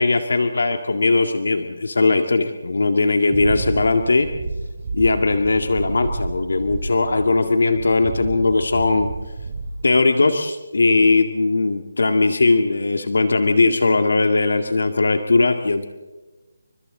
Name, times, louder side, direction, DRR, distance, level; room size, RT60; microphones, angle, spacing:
voice 1, 0.0-4.3 4.9-9.1 9.8-15.8, left 3 dB, 75° left, 6 dB, 2.1 m, -19 dB
sound 1, 3.3-7.5 7.7-9.9, right 3 dB, 35° right, 6.5 m, -30 dB
29.5 x 25.0 x 4.0 m, 1.2 s
hypercardioid pair, 170°, 0 cm